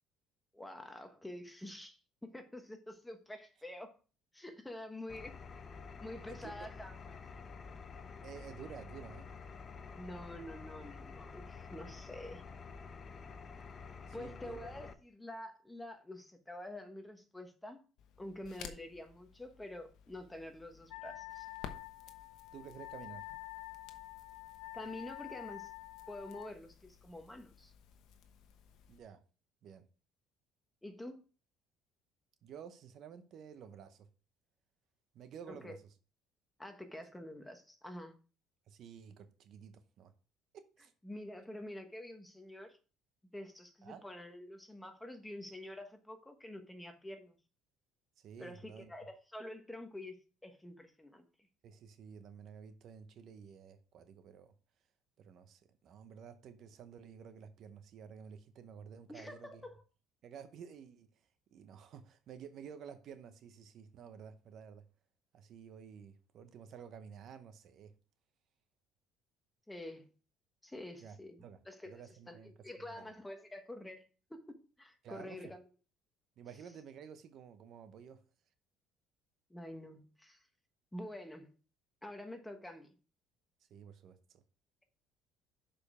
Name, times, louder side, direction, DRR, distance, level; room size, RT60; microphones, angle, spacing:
voice 1, 0.5-4.0 4.3-5.4 6.0-6.9 9.9-12.4 14.1-17.8 18.2-21.5 24.7-25.7 26.1-27.7 30.8-31.2 35.5-35.8 36.6-38.2 41.0-42.8 43.3-47.4 48.4-51.2 59.1-59.8 69.7-70.1 70.6-74.0 74.3-75.7 79.5-80.4 80.9-81.5 82.0-82.9, left 1 dB, 5° left, 1.2 m, -47 dB
Engine, 5.1-14.9, left 5 dB, 30° left, 0.7 m, -49 dB
voice 2, 6.2-6.7 8.2-9.3 14.1-14.6 22.5-23.3 28.9-29.2 29.6-29.8 32.4-34.1 35.1-35.9 38.7-40.1 40.5-40.9 43.8-44.0 48.2-48.9 51.6-54.5 55.2-59.6 60.2-61.1 61.5-64.8 65.3-67.9 71.0-71.6 71.8-72.5 73.0-73.1 75.0-75.4 76.4-78.2 83.7-84.4, right 7 dB, 50° right, 0.8 m, -52 dB
Crackle, 18.0-29.0, left 8 dB, 65° left, 1.0 m, -55 dB
Wind instrument woodwind instrument, 20.9-26.5, left 24 dB, 90° left, 0.3 m, -48 dB
6.7 x 5.1 x 4.9 m
cardioid pair, 125°, 0 cm